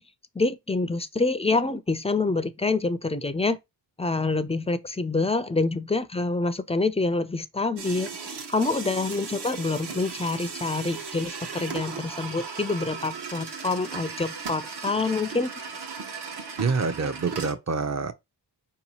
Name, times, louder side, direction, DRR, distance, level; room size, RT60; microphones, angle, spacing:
voice 1, 0.3-3.6 4.0-15.5, left 3 dB, 15° left, 0.3 m, -26 dB
sound 1, 7.8-17.5, right 5 dB, 65° right, 0.9 m, -37 dB
voice 2, 16.6-18.1, right 4 dB, 40° right, 0.6 m, -26 dB
4.6 x 2.8 x 2.8 m
wide cardioid pair, 85°, 43 cm